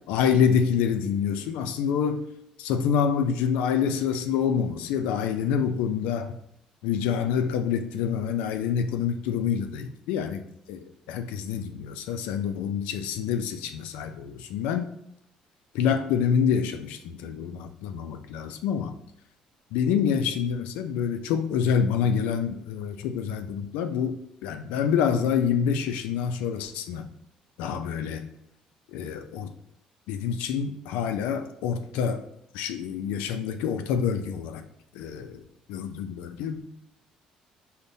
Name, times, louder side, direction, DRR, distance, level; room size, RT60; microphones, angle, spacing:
voice 1, 0.1-2.2 2.6-6.3 6.8-10.4 10.7-14.9 15.7-18.9 19.7-27.1 27.6-28.2 28.9-29.5 30.1-32.2 32.5-34.6 34.9-35.4 35.7-36.7, left 7 dB, 90° left, 8 dB, 0.3 m, -27 dB
5.2 x 2.1 x 2.6 m, 0.77 s
supercardioid pair, 85°, 2 cm